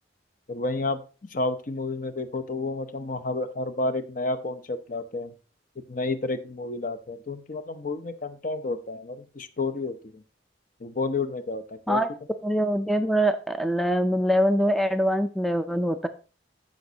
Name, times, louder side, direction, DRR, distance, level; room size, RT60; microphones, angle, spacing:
voice 1, 0.5-1.0 1.3-5.3 5.9-10.2 10.8-12.0, left 2 dB, 45° left, 10 dB, 0.8 m, -30 dB
voice 2, 12.4-16.1, equal, ahead, 8 dB, 0.4 m, -23 dB
14.5 x 5.2 x 2.8 m, 0.35 s
head